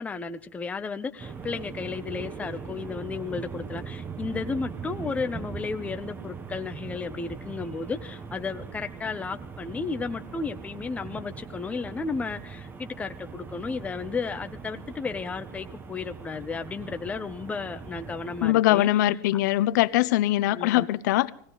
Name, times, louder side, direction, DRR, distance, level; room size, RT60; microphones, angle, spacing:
voice 1, 0.0-18.9 20.5-20.9, left 4 dB, 15° left, 0.8 m, -33 dB
sound 1, 1.2-18.5, right 5 dB, 20° right, 0.9 m, -40 dB
voice 2, 18.4-21.3, left 15 dB, 70° left, 0.7 m, -22 dB
20.0 x 17.0 x 4.0 m
supercardioid pair, 125°, 10 cm